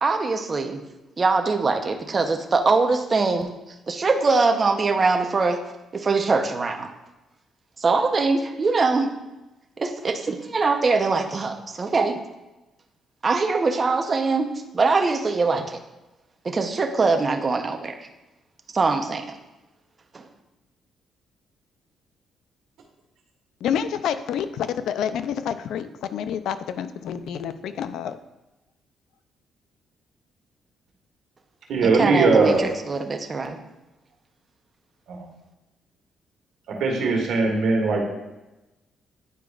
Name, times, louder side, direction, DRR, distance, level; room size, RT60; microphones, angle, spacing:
voice 1, 0.0-0.8 1.2-3.5 3.9-5.6 5.9-6.9 7.8-9.1 9.8-12.2 13.2-15.8 16.4-18.0 18.7-19.4 20.1-20.2 31.9-33.6, right 4 dB, 35° right, 5 dB, 0.7 m, -22 dB
voice 2, 23.6-28.2, left 8 dB, 80° left, 12 dB, 0.4 m, -28 dB
voice 3, 31.7-32.6 35.1-35.3 36.7-38.0, right 3 dB, 75° right, 1 dB, 1.5 m, -20 dB
9.3 x 4.9 x 2.4 m, 1.0 s
cardioid pair, 90°, 0 cm